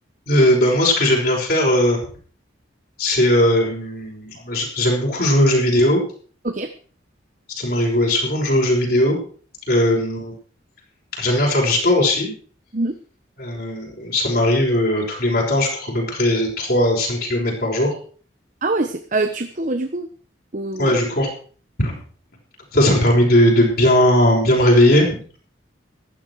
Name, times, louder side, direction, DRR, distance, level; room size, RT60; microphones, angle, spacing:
voice 1, 0.3-2.0 3.0-6.0 7.6-9.2 9.7-10.3 11.2-12.3 13.4-17.9 20.8-21.3 21.8-21.9 22.7-25.2, left 1 dB, 50° left, -2 dB, 5.7 m, -18 dB
voice 2, 18.6-20.1 20.5-21.0, right 2 dB, 40° right, 7 dB, 1.0 m, -24 dB
15.0 x 12.5 x 4.7 m, 0.42 s
head